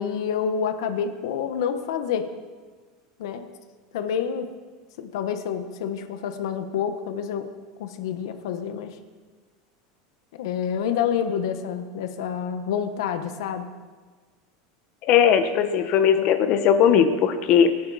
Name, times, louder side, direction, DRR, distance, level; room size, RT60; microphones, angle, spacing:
voice 1, 0.0-2.3 3.2-3.4 3.9-4.5 5.0-7.5 7.8-9.0 10.4-13.7, left 7 dB, 80° left, 8 dB, 1.3 m, -28 dB
voice 2, 15.0-17.8, left 8 dB, 45° left, 8 dB, 1.4 m, -19 dB
24.5 x 11.5 x 4.3 m, 1.4 s
supercardioid pair, 145°, 2 cm